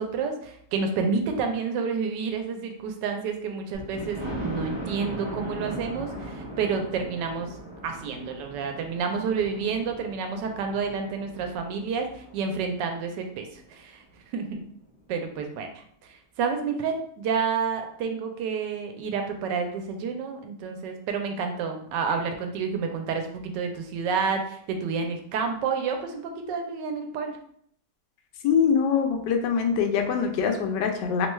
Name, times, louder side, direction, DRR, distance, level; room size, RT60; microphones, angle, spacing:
voice 1, 0.0-7.6 7.8-14.0 14.3-14.6 15.1-15.8 16.1-27.4, right 5 dB, 85° right, 5 dB, 1.2 m, -29 dB
Thunder, 3.7-13.5 14.0-14.1 14.5-14.6 14.9-15.0, right 1 dB, 30° right, 0.6 m, -38 dB
voice 2, 28.4-31.3, left 6 dB, 85° left, 5 dB, 1.2 m, -23 dB
3.2 x 2.2 x 3.1 m, 0.65 s
omnidirectional pair, 1.8 m